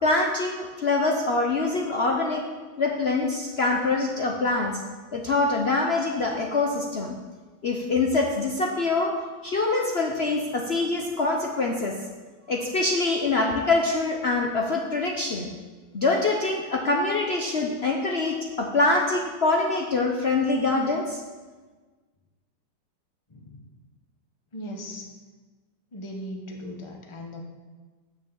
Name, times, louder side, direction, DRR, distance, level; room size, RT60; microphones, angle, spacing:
voice 1, 0.0-2.4 2.8-4.8 5.1-7.1 7.6-9.1 9.4-11.9 12.5-15.5 15.9-21.2, left 3 dB, 70° left, 1 dB, 0.6 m, -24 dB
voice 2, 24.5-25.1 25.9-27.4, equal, 20° left, 1 dB, 0.9 m, -38 dB
9.4 x 6.3 x 7.5 m, 1.4 s
omnidirectional pair, 2.3 m